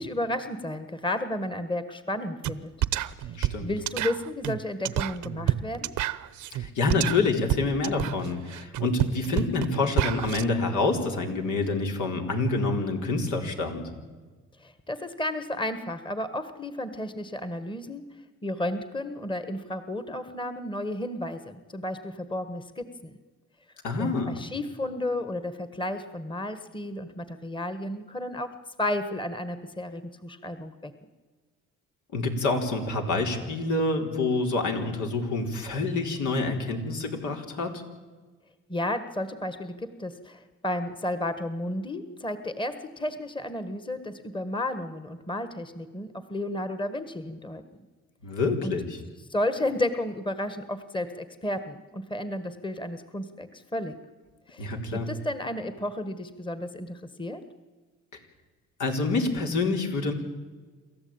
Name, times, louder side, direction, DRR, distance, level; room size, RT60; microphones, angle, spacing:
voice 1, 0.0-2.7 3.2-3.3 3.6-5.9 14.6-18.0 18.4-23.2 24.0-30.9 38.7-47.6 48.6-48.7 49.3-53.9 54.5-57.4, left 1 dB, 15° left, 11 dB, 1.6 m, -32 dB
sound 1, 2.4-2.6 2.8-10.4, right 13 dB, 80° right, 0.9 m, -29 dB
voice 2, 3.3-3.7 6.5-13.9 23.8-24.4 32.1-37.7 48.2-49.0 54.6-55.1 58.8-60.1, left 3 dB, 75° left, 3 dB, 4.1 m, -27 dB
27.5 x 14.0 x 8.9 m, 1.4 s
cardioid pair, 90°, 30 cm